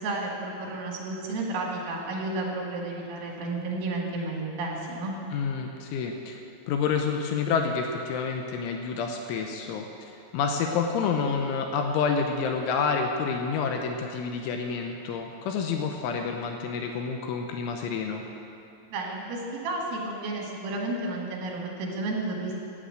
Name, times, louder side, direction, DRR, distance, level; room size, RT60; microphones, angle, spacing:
voice 1, 0.0-5.1 18.9-22.5, right 2 dB, 85° right, -2 dB, 4.8 m, -32 dB
voice 2, 5.3-6.4 6.7-18.2, left 5 dB, 80° left, 3 dB, 3.1 m, -28 dB
12.5 x 10.0 x 7.7 m, 2.7 s
omnidirectional pair, 5.7 m